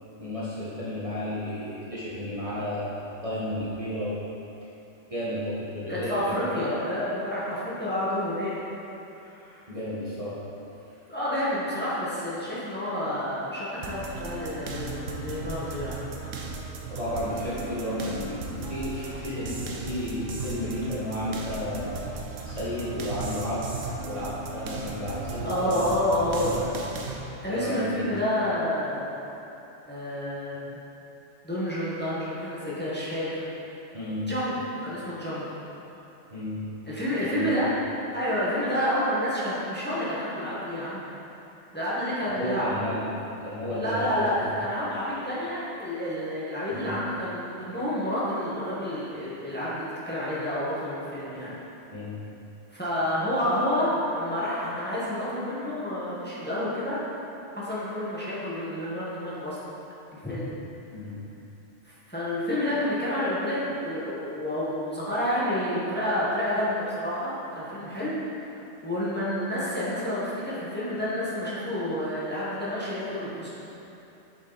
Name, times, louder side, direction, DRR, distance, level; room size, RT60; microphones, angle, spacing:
voice 1, 0.2-4.2 5.1-6.2 9.7-10.4 16.9-22.0 22.4-23.7 24.0-25.9 26.3-26.6 27.5-28.1 33.9-34.3 36.3-36.6 37.2-37.5 42.3-43.0 43.4-44.4 46.7-46.9 51.9-52.2 60.9-61.2, left 1 dB, 30° right, -9 dB, 1.4 m, -32 dB
voice 2, 5.9-8.6 9.3-9.6 11.1-16.0 25.4-26.7 27.4-29.1 29.8-30.6 31.4-33.5 34.3-34.5 34.8-35.5 36.9-37.7 38.1-41.1 41.7-42.8 43.7-51.6 52.7-57.0 57.5-59.6 60.1-60.5 61.8-68.2 68.8-73.5, left 1 dB, 10° left, -9 dB, 1.5 m, -29 dB
sound 1, 13.8-27.2, right 3 dB, 85° right, 1.2 m, -36 dB
7.5 x 7.4 x 4.1 m, 3.0 s
omnidirectional pair, 1.2 m